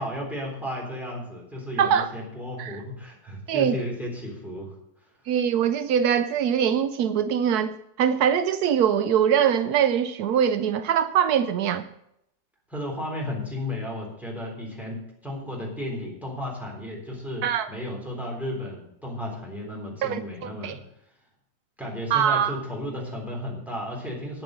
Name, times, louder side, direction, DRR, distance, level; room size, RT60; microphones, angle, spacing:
voice 1, 0.0-5.1 12.7-20.8 21.8-24.4, left 1 dB, ahead, -2 dB, 3.6 m, -34 dB
voice 2, 1.8-2.1 2.6-2.7 3.5-3.8 5.3-11.9 17.4-17.7 20.0-20.8 22.1-22.6, right 8 dB, 80° right, 12 dB, 1.1 m, -23 dB
9.4 x 7.4 x 7.6 m, 0.78 s
omnidirectional pair, 1.7 m